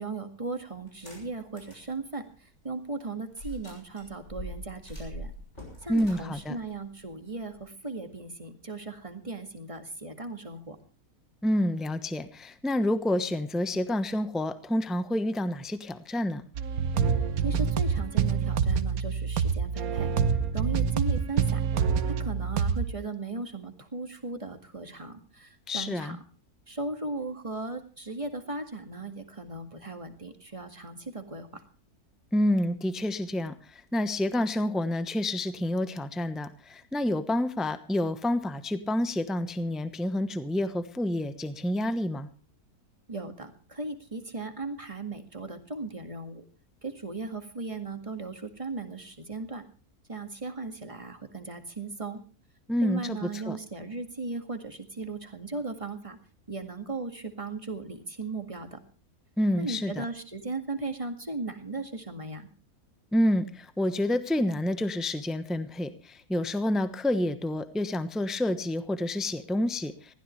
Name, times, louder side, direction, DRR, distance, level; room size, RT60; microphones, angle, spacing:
voice 1, 0.0-2.2 2.6-5.3 5.8-10.8 17.4-20.1 20.5-21.6 22.1-26.2 26.7-31.6 43.1-46.4 46.8-49.7 50.1-52.2 52.8-56.2 56.5-58.8 59.6-62.5, right 3 dB, 20° right, 7 dB, 2.0 m, -37 dB
sound 1, 0.9-1.9 2.3-2.4 3.3-7.6, right 1 dB, 50° left, 7.2 m, -43 dB
voice 2, 5.9-6.6 11.4-16.4 25.7-26.2 32.3-33.5 33.9-42.3 52.7-53.6 59.4-60.0 63.1-69.9, left 1 dB, ahead, 11 dB, 0.9 m, -28 dB
sound 2, 16.5-22.9, right 6 dB, 75° right, 1.4 m, -26 dB
20.5 x 15.5 x 3.2 m, 0.35 s
omnidirectional pair, 1.6 m